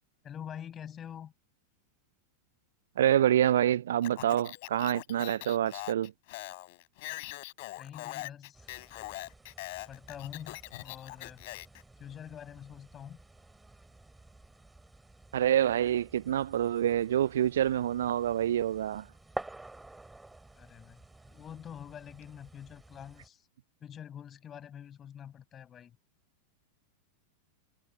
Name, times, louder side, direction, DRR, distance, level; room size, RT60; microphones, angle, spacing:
voice 1, 0.2-1.3 7.8-8.7 9.9-11.4 12.0-13.2 20.5-23.5 23.8-26.0, left 9 dB, 25° left, 6.8 m, -46 dB
voice 2, 3.0-6.1 15.3-19.0, right 11 dB, 60° right, 0.4 m, -27 dB
Speech, 4.0-11.8, left 22 dB, 50° left, 3.2 m, -42 dB
sound 1, 8.5-23.3, right 2 dB, 5° right, 5.1 m, -50 dB
figure-of-eight pair, 90°, 0 cm